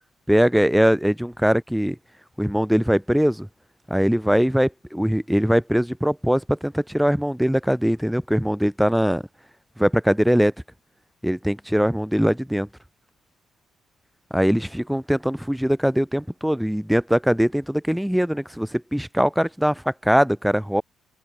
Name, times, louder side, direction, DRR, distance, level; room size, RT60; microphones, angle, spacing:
voice 1, 0.3-2.0 2.4-3.5 3.9-9.2 9.8-10.5 11.2-12.7 14.3-20.8, equal, ahead, 0.3 m, -21 dB
cardioid pair, 90°, 0 cm